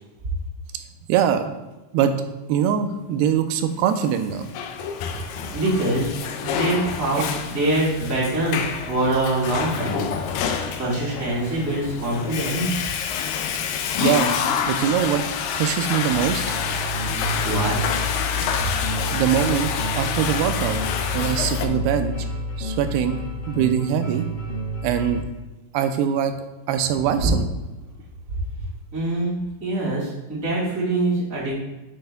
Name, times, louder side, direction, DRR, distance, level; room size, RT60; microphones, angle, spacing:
voice 1, 1.1-1.5 1.9-2.1 2.5-4.5 14.0-14.3 14.7-15.2 15.5-16.4 19.1-20.8 21.1-22.2 22.6-23.2 23.5-24.2 24.8-25.2 25.7-26.3 26.7-27.5, right 9 dB, 80° right, 8 dB, 2.6 m, -22 dB
Water / Toilet flush, 4.2-21.7, left 7 dB, 85° left, 2.0 m, -27 dB
voice 2, 5.5-6.1 6.4-10.1 10.8-12.8 17.0-17.8 28.9-31.6, right 1 dB, 25° right, -9 dB, 2.2 m, -24 dB
sound 1, 16.1-25.2, left 1 dB, 60° left, 2.8 m, -29 dB
10.0 x 6.3 x 2.3 m, 1.1 s
omnidirectional pair, 4.7 m